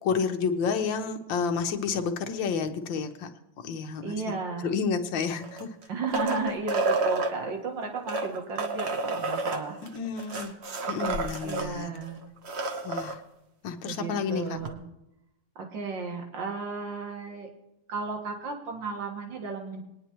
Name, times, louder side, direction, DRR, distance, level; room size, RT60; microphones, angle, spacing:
voice 1, 0.0-3.3 3.6-4.2 4.6-5.7 9.9-10.5 10.9-11.9 12.8-13.2 13.6-14.6, left 5 dB, 70° left, 6 dB, 1.6 m, -30 dB
voice 2, 4.0-4.7 5.9-9.8 11.4-12.2 13.9-14.8 15.6-17.5 17.9-19.8, right 4 dB, 65° right, 2 dB, 2.2 m, -34 dB
sound 1, 5.4-7.3 8.0-11.7 12.0-12.1 12.4-13.1 14.6-14.7, right 3 dB, 45° right, 0.9 m, -30 dB
21.0 x 9.8 x 3.0 m, 0.88 s
omnidirectional pair, 2.2 m